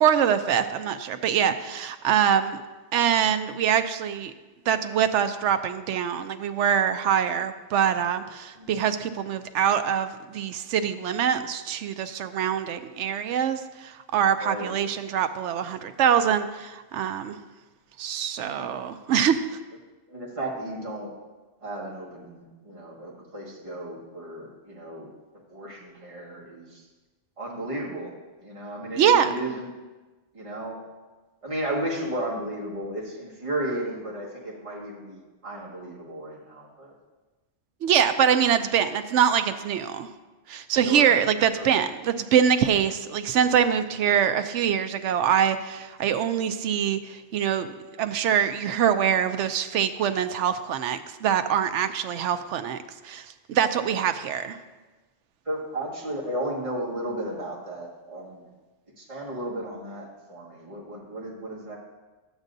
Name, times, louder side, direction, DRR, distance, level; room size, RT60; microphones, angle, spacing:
voice 1, 0.0-2.6 2.9-4.3 4.7-17.4 18.0-19.4 28.9-29.3 37.8-40.1 40.5-54.6, right 8 dB, 80° right, 10 dB, 0.9 m, -24 dB
voice 2, 14.4-14.7 18.5-18.8 20.1-21.1 21.6-25.1 25.3-26.8 27.4-28.1 28.4-29.7 30.3-30.8 31.4-36.9 40.9-41.2 41.5-41.8 55.4-58.4 59.0-61.8, right 1 dB, 25° right, -4 dB, 1.8 m, -34 dB
12.5 x 8.1 x 2.6 m, 1.2 s
omnidirectional pair, 1.2 m